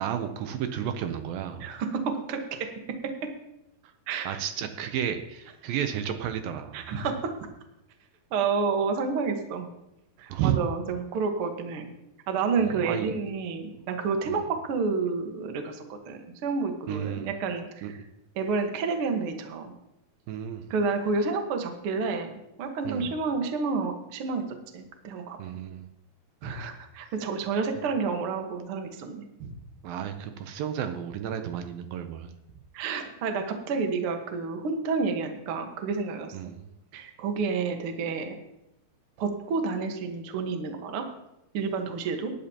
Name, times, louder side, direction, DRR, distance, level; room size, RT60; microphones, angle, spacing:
voice 1, 0.0-1.7 4.3-6.8 10.3-10.6 12.6-13.1 14.3-14.4 16.9-17.3 17.8-17.9 20.3-20.7 22.8-23.1 25.4-25.9 29.8-32.3 36.3-36.7, right 9 dB, 80° right, 8 dB, 2.3 m, -32 dB
voice 2, 1.6-2.7 3.0-3.1 4.1-4.4 6.7-7.3 8.3-9.7 10.2-11.9 12.3-18.0 18.3-19.7 20.7-24.4 24.7-25.4 26.4-29.5 32.7-36.6 36.9-38.4 39.2-41.0 41.5-42.3, right 4 dB, 60° right, 4 dB, 1.5 m, -30 dB
18.5 x 10.0 x 2.9 m, 0.88 s
omnidirectional pair, 4.4 m